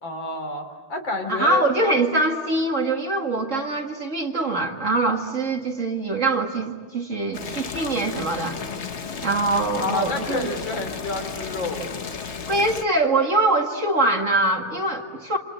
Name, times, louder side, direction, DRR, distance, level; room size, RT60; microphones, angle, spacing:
voice 1, 0.0-1.6 9.8-11.9, left 3 dB, 65° left, 4 dB, 4.0 m, -29 dB
voice 2, 1.3-8.6 9.2-10.5 12.5-15.4, right 2 dB, 35° right, 2 dB, 2.2 m, -23 dB
Boiling, 7.3-12.8, left 6 dB, 40° left, 1.1 m, -33 dB
28.0 x 27.5 x 7.8 m, 1.5 s
omnidirectional pair, 2.3 m